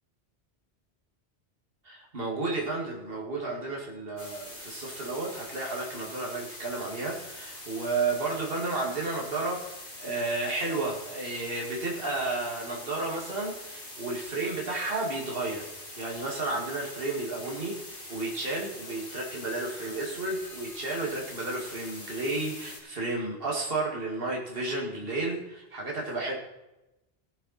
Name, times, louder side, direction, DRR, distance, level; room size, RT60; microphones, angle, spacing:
voice 1, 1.8-15.7 16.0-26.3, right 2 dB, 60° right, -2 dB, 2.4 m, -32 dB
sound 1, 4.2-22.8, left 1 dB, 50° left, 3.0 m, -44 dB
18.0 x 7.9 x 4.3 m, 0.96 s
omnidirectional pair, 1.1 m